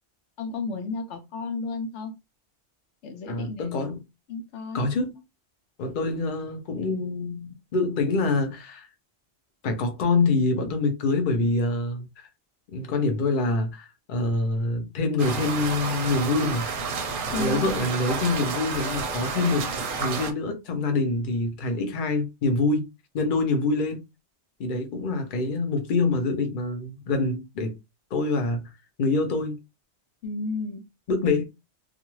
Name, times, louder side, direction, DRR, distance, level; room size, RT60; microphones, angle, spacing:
voice 1, 0.4-2.1 3.0-3.9 4.3-4.8 17.3-17.8 30.2-30.8, left 3 dB, 85° left, 0.9 m, -33 dB
voice 2, 3.3-4.0 4.7-5.1 5.8-8.9 9.6-12.3 12.7-16.7 17.3-22.9 23.1-24.0 24.6-27.8 28.1-28.7 29.0-29.6 31.1-31.4, left 3 dB, 55° left, 0.8 m, -25 dB
sound 1, 15.2-20.3, right 4 dB, 60° right, 0.7 m, -30 dB
2.4 x 2.4 x 3.0 m
omnidirectional pair, 1.2 m